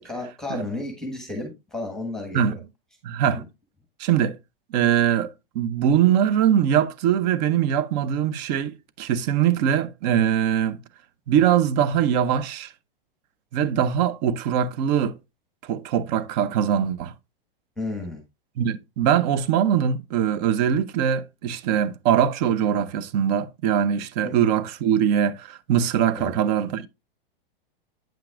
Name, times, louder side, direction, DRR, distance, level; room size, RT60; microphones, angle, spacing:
voice 1, 0.0-2.4 3.2-3.4 17.8-18.2 24.2-24.4 26.2-26.3, left 2 dB, ahead, 1.5 m, -32 dB
voice 2, 3.0-3.4 4.0-4.4 4.7-10.8 11.3-12.7 13.5-15.2 15.6-17.1 18.6-26.9, right 9 dB, 45° right, 0.7 m, -22 dB
8.7 x 5.8 x 2.4 m
hypercardioid pair, 130°, 29 cm